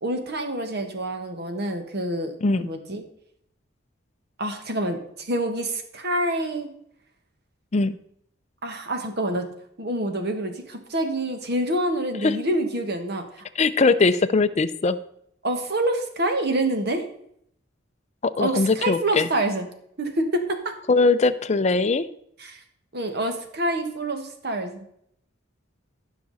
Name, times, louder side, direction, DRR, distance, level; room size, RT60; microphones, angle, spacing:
voice 1, 0.0-3.0 4.4-6.7 8.6-9.4 9.8-13.4 15.4-17.0 18.4-19.7 20.0-20.7 22.4-22.6 22.9-24.8, right 1 dB, 55° right, 6 dB, 1.5 m, -27 dB
voice 2, 13.6-15.0 18.2-19.3 20.9-22.1, left 3 dB, 35° left, 11 dB, 0.5 m, -20 dB
15.5 x 5.8 x 4.1 m, 0.71 s
head